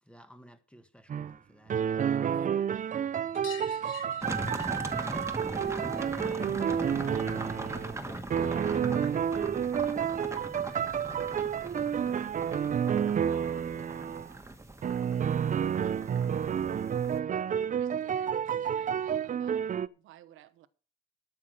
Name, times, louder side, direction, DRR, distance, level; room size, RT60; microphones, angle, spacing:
voice 1, 0.0-1.8 2.0-2.5, equal, 5° left, 1.5 m, -56 dB
sound 1, 1.1-1.4 1.7-8.0 8.3-14.3 14.8-19.9, right 8 dB, 40° right, 0.5 m, -30 dB
sound 2, 3.3-8.5 8.7-9.9 11.3-11.4 11.6-11.7 12.0-12.1 13.3-13.4 13.7-13.8 14.2-14.3 15.5-15.6 16.4-16.5, left 7 dB, 80° left, 2.9 m, -51 dB
voice 2, 4.1-9.6, left 4 dB, 60° left, 6.0 m, -52 dB
sound 3, 4.2-17.2, right 2 dB, 15° right, 1.6 m, -39 dB
voice 3, 17.8-20.7, right 13 dB, 90° right, 0.9 m, -56 dB
12.5 x 6.0 x 6.5 m
cardioid pair, 90°, 20 cm